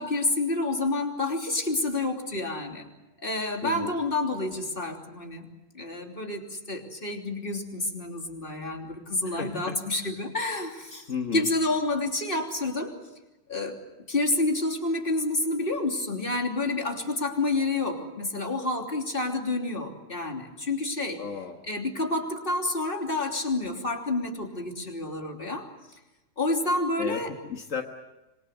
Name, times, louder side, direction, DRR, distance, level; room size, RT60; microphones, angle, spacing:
voice 1, 0.0-2.9 3.2-5.5 5.7-11.1 11.3-13.0 13.5-13.8 14.1-21.2 21.7-25.7 26.4-27.3, left 2 dB, 45° left, 2 dB, 3.4 m, -29 dB
voice 2, 3.6-3.9 9.2-9.8 11.1-11.5 21.2-21.6 27.0-27.2 27.5-27.8, left 6 dB, 85° left, 3 dB, 1.9 m, -33 dB
27.0 x 23.0 x 7.8 m, 1.0 s
omnidirectional pair, 1.3 m